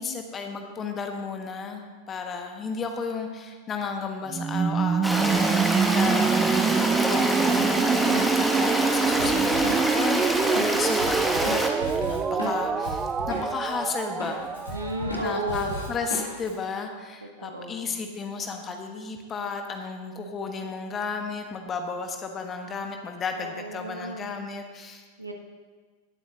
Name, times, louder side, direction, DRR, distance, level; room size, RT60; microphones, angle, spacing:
voice 1, 0.0-6.4 6.7-10.2 10.5-11.6 11.9-14.5 15.2-25.0, left 5 dB, 25° left, 4 dB, 1.3 m, -33 dB
sound 1, 4.3-16.1, right 6 dB, 20° right, 0.3 m, -26 dB
Stream, 5.0-11.7, equal, ahead, 1.2 m, -26 dB
Drum kit, 9.2-13.7 14.0-16.5, left 1 dB, 70° left, 2.7 m, -35 dB
voice 2, 14.7-15.9 17.2-17.9 23.4-24.3 25.2-25.3, right 1 dB, 85° right, 2 dB, 1.4 m, -34 dB
19.0 x 7.8 x 2.9 m, 1.5 s
figure-of-eight pair, 90°, 0 cm